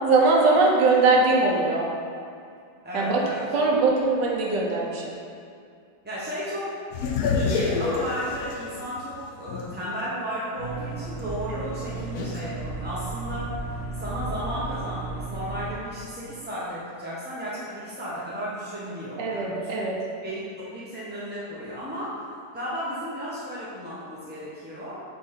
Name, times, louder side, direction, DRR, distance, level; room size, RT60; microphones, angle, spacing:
voice 1, 0.0-1.9 2.9-3.2 3.5-5.1 11.6-11.7 19.2-19.9, right 3 dB, 80° right, -3 dB, 1.6 m, -21 dB
voice 2, 2.8-3.6 6.0-6.7 7.3-13.5 14.0-19.9 20.2-22.2 22.5-25.0, equal, 10° right, -9 dB, 0.5 m, -34 dB
sound 1, 6.9-10.0 10.5-10.6 12.2-12.5, left 4 dB, 70° left, 1.1 m, -27 dB
sound 2, 10.6-15.7, right 3 dB, 35° right, 1.7 m, -34 dB
7.2 x 3.3 x 5.7 m, 2.3 s
omnidirectional pair, 1.9 m